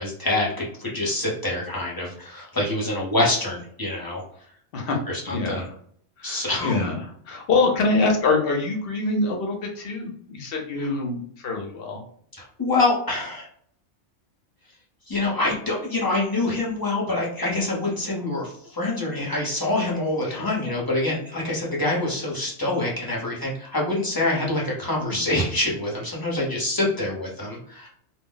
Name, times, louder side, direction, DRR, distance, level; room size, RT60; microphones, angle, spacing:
voice 1, 0.0-4.2 5.1-5.6 6.2-6.8 12.3-13.5 15.1-27.9, left 2 dB, 20° left, -4 dB, 0.6 m, -26 dB
voice 2, 5.3-5.7 6.2-12.0 20.3-20.5 25.0-25.3, left 3 dB, 60° left, 1 dB, 0.8 m, -25 dB
2.2 x 2.0 x 3.7 m, 0.63 s
omnidirectional pair, 1.2 m